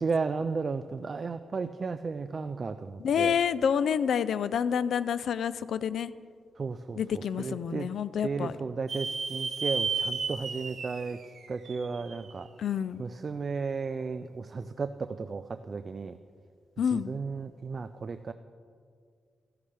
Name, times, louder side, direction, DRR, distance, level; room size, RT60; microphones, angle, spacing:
voice 1, 0.0-3.3 6.6-7.0 7.4-7.9 8.2-11.2 11.5-12.5 13.0-16.2 16.9-18.3, right 4 dB, 40° right, 11 dB, 0.3 m, -34 dB
voice 2, 3.0-6.1 6.9-8.5 12.6-13.0 16.8-17.2, left 8 dB, 75° left, 16 dB, 0.3 m, -28 dB
sound 1, 8.9-12.4, right 4 dB, 55° right, 1.2 m, -33 dB
15.0 x 10.5 x 3.4 m, 2.2 s
wide cardioid pair, 120°, 0 cm